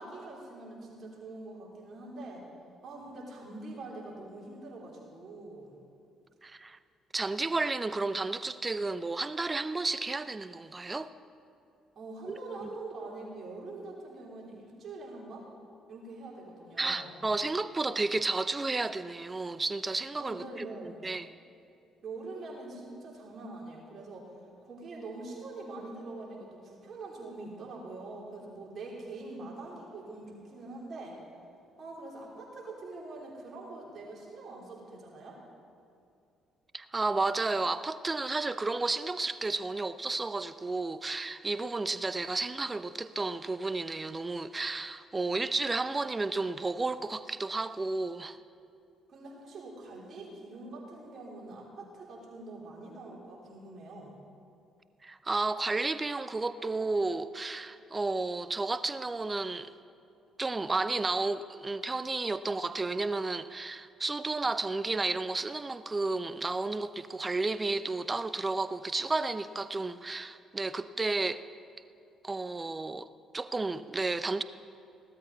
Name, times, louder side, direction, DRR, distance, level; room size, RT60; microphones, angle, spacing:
voice 1, 0.0-2.4 2.8-5.8 12.0-15.5 15.9-17.2 20.2-21.0 22.0-24.3 24.6-31.2 31.8-35.4 49.1-54.1, right 2 dB, 50° right, -3 dB, 3.4 m, -44 dB
voice 2, 6.4-6.8 7.1-11.1 12.3-12.7 16.8-21.3 36.7-48.4 55.0-59.7 60.4-71.4 72.2-73.1 73.3-74.4, right 3 dB, 25° right, 14 dB, 0.6 m, -32 dB
16.0 x 13.0 x 4.0 m, 2.6 s
hypercardioid pair, 50°, 0 cm